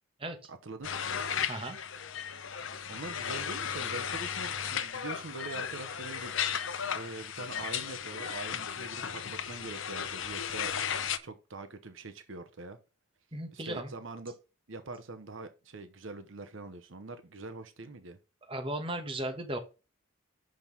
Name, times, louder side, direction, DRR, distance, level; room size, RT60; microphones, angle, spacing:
voice 1, 0.5-1.0 2.9-6.3 6.9-10.7 11.2-12.8 13.5-14.3 14.7-18.2, right 3 dB, 70° right, 9 dB, 1.0 m, -43 dB
sound 1, 0.8-11.2, left 8 dB, 70° left, 0.7 m, -35 dB
voice 2, 13.3-13.9 18.5-19.6, right 1 dB, 25° right, 4 dB, 1.3 m, -36 dB
5.9 x 5.3 x 5.3 m, 0.30 s
head